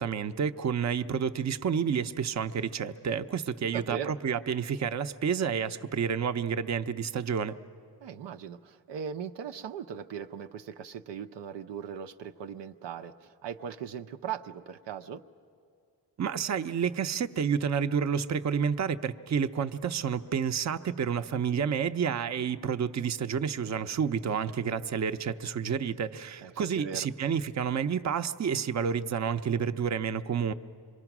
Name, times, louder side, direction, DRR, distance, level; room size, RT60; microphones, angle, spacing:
voice 1, 0.0-7.6 16.2-30.5, right 7 dB, 40° right, 9 dB, 0.6 m, -30 dB
voice 2, 3.7-4.2 8.0-15.2 26.4-27.1, right 8 dB, 90° right, 7 dB, 0.7 m, -39 dB
26.0 x 22.5 x 6.0 m, 2.3 s
cardioid pair, 80°, 42 cm